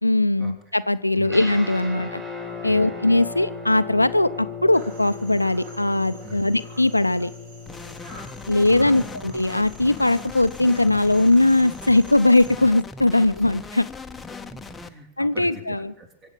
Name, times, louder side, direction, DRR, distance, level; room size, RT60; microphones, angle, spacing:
voice 1, 0.0-2.2 2.6-7.3 8.5-13.9 15.2-15.9, left 2 dB, 85° left, 13 dB, 0.5 m, -20 dB
sound 1, 1.2-11.8, left 4 dB, 10° right, 6.4 m, -38 dB
voice 2, 2.6-3.0 6.2-6.4 8.6-9.2 14.5-16.3, right 1 dB, 30° right, 4 dB, 3.8 m, -42 dB
sound 2, 4.7-12.5, right 1 dB, 50° right, 3.9 m, -48 dB
sound 3, 7.7-14.9, left 3 dB, 10° left, 1.0 m, -39 dB
24.0 x 8.1 x 6.8 m, 0.76 s
figure-of-eight pair, 90°, 0 cm